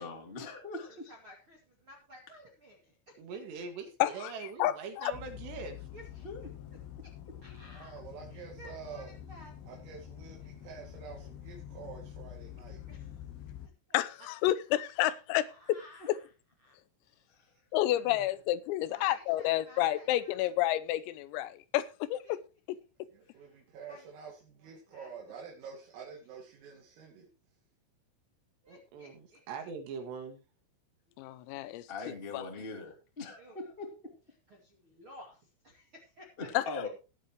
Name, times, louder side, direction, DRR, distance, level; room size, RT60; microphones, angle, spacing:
voice 1, 0.0-1.1 6.2-6.5 17.3-17.5 18.0-18.2 31.5-34.1 36.4-36.9, left 3 dB, 20° left, 1.7 m, -42 dB
voice 2, 0.9-3.4 5.9-6.2 7.4-8.0 8.3-9.8 12.9-13.1 13.6-14.0 15.0-15.1 15.4-16.3 16.6-16.8 18.8-20.5 23.2-23.6 23.9-24.0 24.9-25.1 28.6-29.4 31.1-31.7 33.4-33.6 34.5-36.9, left 1 dB, 45° right, 1.7 m, -55 dB
voice 3, 3.2-5.9 28.7-30.4, right 5 dB, 60° right, 3.8 m, -42 dB
voice 4, 4.0-4.3 4.6-5.1 13.9-15.4 16.1-16.2 17.7-22.4 22.7-22.8 31.2-31.8 32.3-32.4 36.5-36.6, left 14 dB, 90° left, 3.5 m, -30 dB
sound 1, 5.1-13.7, left 10 dB, 70° left, 2.3 m, -47 dB
voice 5, 7.6-9.1 9.6-12.8 17.1-17.2 23.1-27.3, right 6 dB, 80° right, 5.1 m, -48 dB
18.5 x 8.4 x 3.1 m
omnidirectional pair, 5.9 m